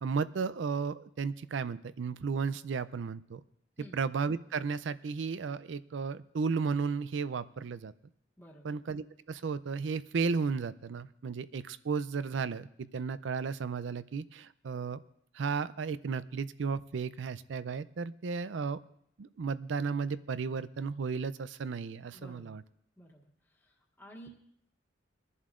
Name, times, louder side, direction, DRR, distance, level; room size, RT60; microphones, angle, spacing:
voice 1, 0.0-3.4 3.9-7.9 8.6-15.0 15.3-18.8 19.2-22.6, right 5 dB, 75° right, 15 dB, 0.4 m, -34 dB
voice 2, 8.4-8.8 22.1-22.6 23.0-23.2 23.5-24.3, equal, 10° left, -4 dB, 1.5 m, -52 dB
22.5 x 11.0 x 2.5 m, 0.71 s
head